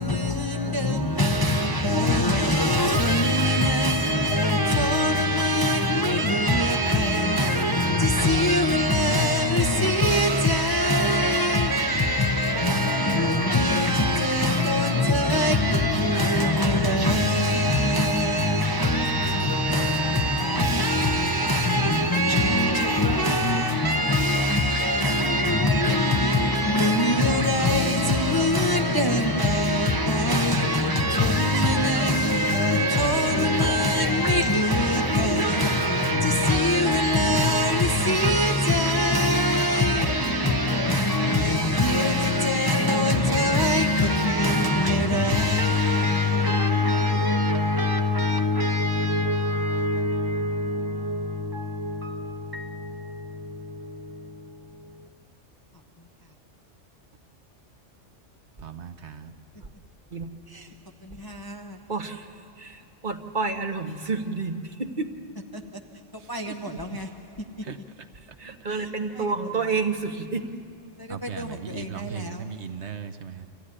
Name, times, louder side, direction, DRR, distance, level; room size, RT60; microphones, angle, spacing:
voice 1, 0.0-55.1 60.5-60.7 61.0-61.8 65.5-66.0 66.3-67.6 68.7-69.3 71.0-72.7, left 1 dB, 20° left, 0.8 m, -23 dB
voice 2, 58.6-59.3 66.2-66.8 67.6-67.8 68.4-68.5 71.1-73.5, right 7 dB, 65° right, 1.1 m, -38 dB
voice 3, 61.9-62.2 62.6-62.8 63.0-64.5 64.8-65.1 68.4-70.4, right 4 dB, 40° right, 1.4 m, -29 dB
26.0 x 15.5 x 9.9 m
omnidirectional pair, 1.2 m